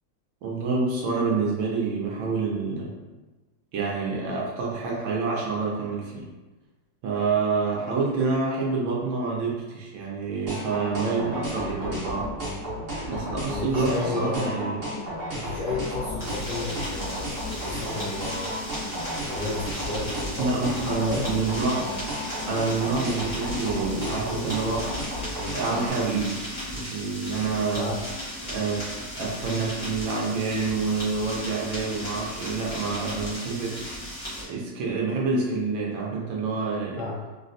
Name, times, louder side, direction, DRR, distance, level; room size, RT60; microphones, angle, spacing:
voice 1, 0.4-2.9 3.7-6.3 7.0-12.3 13.1-14.8 20.4-21.8 22.5-24.9 25.5-26.4 26.7-27.9 28.4-33.9 34.4-37.0, right 4 dB, 75° right, -3 dB, 1.3 m, -27 dB
sound 1, 10.5-25.9, equal, 45° right, 0.8 m, -33 dB
voice 2, 13.5-14.6 15.3-18.5 19.2-21.2 27.7-28.1 37.0-37.2, left 2 dB, 70° left, -7 dB, 1.0 m, -33 dB
sound 2, 16.2-34.4, equal, 35° left, 0.4 m, -36 dB
3.9 x 2.1 x 2.5 m, 1.2 s
omnidirectional pair, 2.3 m